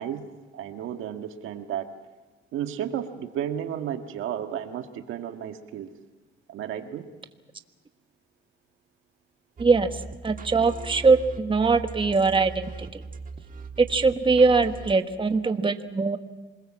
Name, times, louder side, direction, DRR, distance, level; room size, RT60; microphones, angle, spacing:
voice 1, 0.0-1.9 2.5-5.9 6.5-7.1, right 9 dB, 85° right, 6 dB, 1.7 m, -33 dB
voice 2, 9.6-10.0 10.2-12.6 12.9-13.0 13.9-16.2, right 4 dB, 25° right, 7 dB, 1.4 m, -21 dB
sound 1, 9.6-14.9, right 4 dB, 45° right, 1.6 m, -39 dB
27.5 x 21.0 x 7.4 m, 1.2 s
cardioid pair, 90°, 20 cm